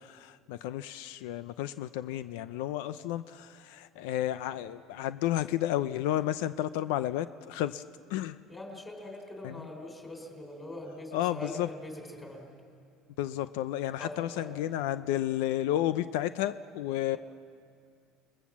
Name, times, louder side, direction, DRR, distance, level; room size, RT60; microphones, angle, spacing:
voice 1, 0.0-7.8 8.1-8.4 9.4-9.7 11.1-11.7 13.2-17.2, left 13 dB, 90° left, 13 dB, 0.6 m, -32 dB
voice 2, 8.5-12.4 14.0-14.5, left 1 dB, 10° left, 2 dB, 4.0 m, -42 dB
29.0 x 20.5 x 7.4 m, 2.3 s
cardioid pair, 165°, 0 cm